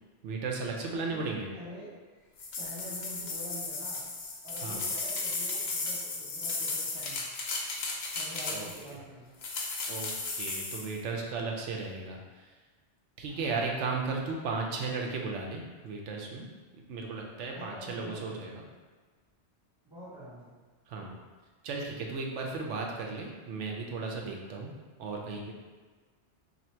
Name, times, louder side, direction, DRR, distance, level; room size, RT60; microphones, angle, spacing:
voice 1, 0.2-1.5 4.6-4.8 8.5-8.7 9.9-12.5 13.2-16.5 16.9-18.6 20.9-21.2 21.6-24.7 25.0-25.5, right 4 dB, 85° right, 1 dB, 1.0 m, -35 dB
voice 2, 0.8-1.9 2.6-4.0 4.4-7.3 8.1-9.4 13.3-13.5 17.5-18.4 19.8-20.6, equal, 25° right, -14 dB, 1.0 m, -46 dB
sound 1, 2.4-8.9 9.4-10.9, left 3 dB, 55° left, 0.5 m, -35 dB
2.8 x 2.5 x 4.3 m, 1.4 s
omnidirectional pair, 1.2 m